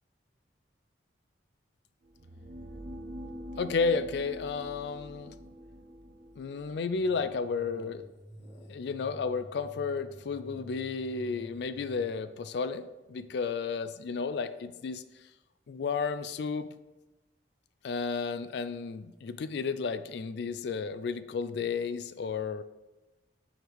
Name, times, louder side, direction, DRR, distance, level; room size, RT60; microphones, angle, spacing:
sound 1, 2.0-8.0, equal, 50° right, 0.5 m, -45 dB
voice 1, 3.6-5.4 6.4-8.0 8.7-15.0 15.7-16.7 17.8-22.6, left 5 dB, 60° left, 12 dB, 0.3 m, -32 dB
sound 2, 7.0-12.2, equal, 20° left, 2.1 m, -49 dB
6.4 x 4.5 x 3.4 m, 1.1 s
head